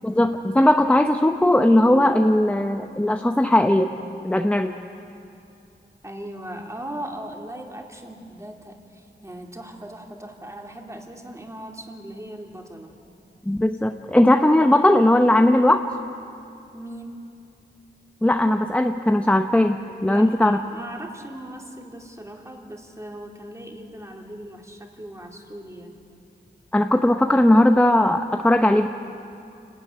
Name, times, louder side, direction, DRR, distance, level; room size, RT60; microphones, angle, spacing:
voice 1, 0.0-3.9 4.2-4.7 13.5-15.8 18.2-20.6 26.7-28.9, left 1 dB, 5° left, 5 dB, 0.8 m, -18 dB
voice 2, 6.0-12.9 16.7-17.2 20.1-26.0, right 1 dB, 15° right, 1 dB, 2.9 m, -38 dB
28.5 x 12.5 x 9.6 m, 2.6 s
wide cardioid pair, 75°, 19 cm